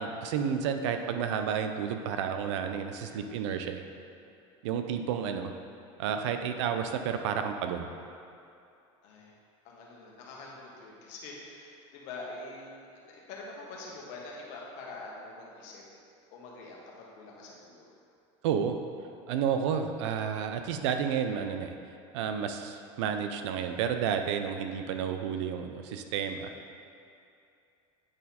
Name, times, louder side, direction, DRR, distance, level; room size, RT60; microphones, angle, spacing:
voice 1, 0.0-3.8 4.6-5.5 6.0-7.9 18.4-18.8 19.3-21.7 22.1-26.5, right 7 dB, 85° right, 6 dB, 0.6 m, -31 dB
voice 2, 9.0-9.3 9.6-15.8 16.3-17.9, left 2 dB, 60° left, -3 dB, 1.5 m, -45 dB
8.8 x 4.2 x 4.2 m, 2.6 s
supercardioid pair, 145°, 15 cm